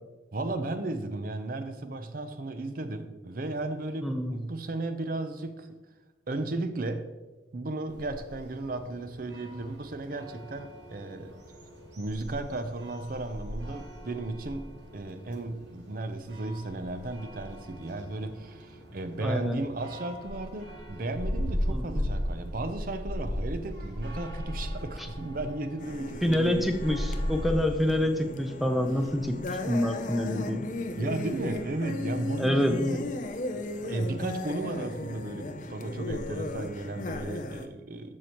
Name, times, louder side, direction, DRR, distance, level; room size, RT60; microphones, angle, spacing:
voice 1, 0.3-5.8 6.3-7.1 7.5-11.4 12.0-26.8 31.0-33.1 33.8-38.2, right 2 dB, 45° right, 9 dB, 0.6 m, -35 dB
voice 2, 4.0-4.3 19.2-19.6 21.7-22.1 26.2-29.4 29.7-30.7 32.4-33.0, left 1 dB, ahead, 5 dB, 0.6 m, -27 dB
sound 1, 7.9-27.5, equal, 65° right, 1.4 m, -37 dB
sound 2, 25.8-37.7, left 2 dB, 40° left, 0.5 m, -36 dB
13.5 x 4.7 x 3.0 m, 1.2 s
head